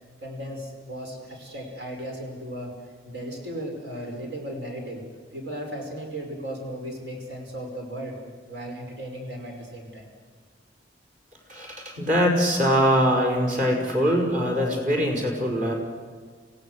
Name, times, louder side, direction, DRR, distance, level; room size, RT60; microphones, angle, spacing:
voice 1, 0.2-2.8 3.0-5.0 5.3-8.2 8.5-10.1, right 1 dB, 75° right, 2 dB, 5.5 m, -36 dB
voice 2, 11.5-15.7, equal, 45° right, 1 dB, 5.4 m, -22 dB
26.5 x 17.0 x 8.0 m, 1.5 s
head